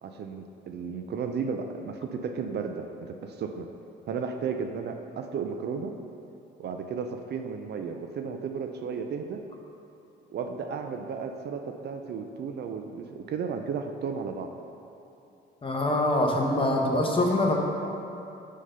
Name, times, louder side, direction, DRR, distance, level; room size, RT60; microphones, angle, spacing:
voice 1, 0.0-3.7 4.1-5.9 6.6-9.4 10.3-14.5 15.9-16.0, right 5 dB, 55° right, 5 dB, 0.5 m, -34 dB
voice 2, 15.6-17.5, left 1 dB, 25° left, 0 dB, 0.9 m, -24 dB
6.2 x 3.8 x 5.5 m, 2.9 s
cardioid pair, 90°, 20 cm